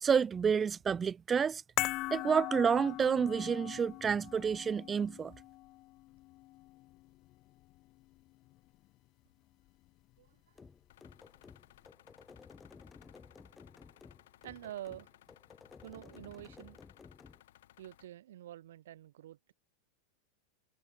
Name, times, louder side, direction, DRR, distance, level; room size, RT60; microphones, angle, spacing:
voice 1, 0.0-1.6 2.1-5.3, right 6 dB, 20° right, 0.3 m, -29 dB
sound 1, 1.8-8.2 8.5-8.6, left 19 dB, 45° left, 0.6 m, -41 dB
voice 2, 10.2-10.7 14.4-15.1 15.8-16.8 17.8-19.5, right 12 dB, 80° right, 4.1 m, -47 dB
sound 2, 10.5-17.4, left 5 dB, 15° left, 0.9 m, -55 dB
sound 3, 10.9-18.1, left 13 dB, 80° left, 4.0 m, -62 dB
supercardioid pair, 120°, 0 cm